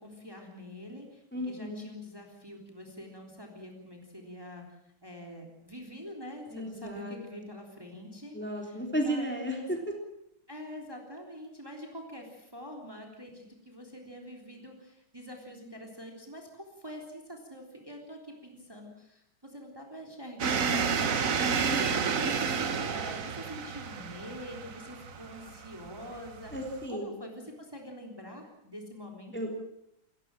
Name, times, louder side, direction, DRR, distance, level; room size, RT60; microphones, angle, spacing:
voice 1, 0.0-9.7 10.5-26.5 26.9-29.5, equal, 10° right, 1 dB, 3.6 m, -45 dB
voice 2, 1.3-1.8 6.5-7.4 8.3-9.9 21.7-21.8 26.5-27.1 29.3-29.6, equal, 5° left, 1 dB, 3.5 m, -34 dB
sound 1, 20.4-26.9, right 6 dB, 45° right, 1.5 m, -31 dB
28.0 x 15.0 x 7.6 m, 0.79 s
omnidirectional pair, 2.1 m